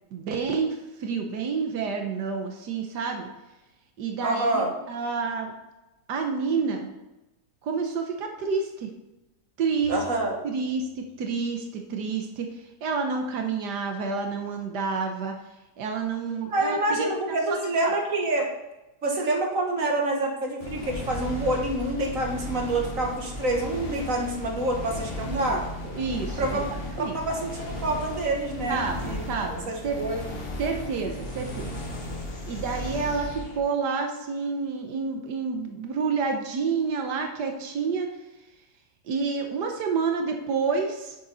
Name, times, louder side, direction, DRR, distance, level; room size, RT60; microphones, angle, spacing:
voice 1, 0.1-3.3 4.0-5.5 6.1-6.9 7.6-8.9 9.6-10.0 10.4-12.5 12.8-15.3 15.8-17.1 17.8-17.9 25.3-25.6 25.9-26.6 27.0-27.2 28.7-30.0 30.6-31.7 32.5-38.1 39.1-41.1, right 5 dB, 85° right, 3 dB, 1.6 m, -29 dB
voice 2, 4.2-4.7 9.9-10.4 16.5-18.5 19.0-25.6 26.4-26.6 27.1-29.2 29.5-30.2, right 2 dB, 55° right, 1 dB, 1.9 m, -27 dB
Bowed string instrument, 9.8-12.4, left 3 dB, 75° left, 4.1 m, -52 dB
sound 1, 20.6-33.6, left 1 dB, 40° left, 1.6 m, -35 dB
9.8 x 6.7 x 4.1 m, 1.0 s
omnidirectional pair, 1.7 m